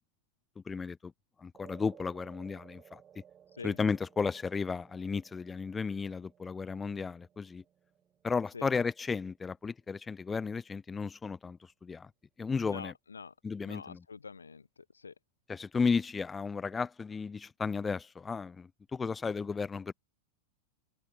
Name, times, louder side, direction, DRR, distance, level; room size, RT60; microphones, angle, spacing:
voice 1, 0.7-1.1 1.4-3.0 3.6-7.6 8.2-12.1 12.4-12.9 13.4-14.0 15.5-19.9, left 5 dB, 15° left, 0.6 m, -34 dB
sound 1, 1.5-10.0, right 9 dB, 25° right, 3.6 m, -59 dB
voice 2, 12.7-13.3 13.6-15.1, left 5 dB, 80° left, 0.6 m, -45 dB
figure-of-eight pair, 90°, 0 cm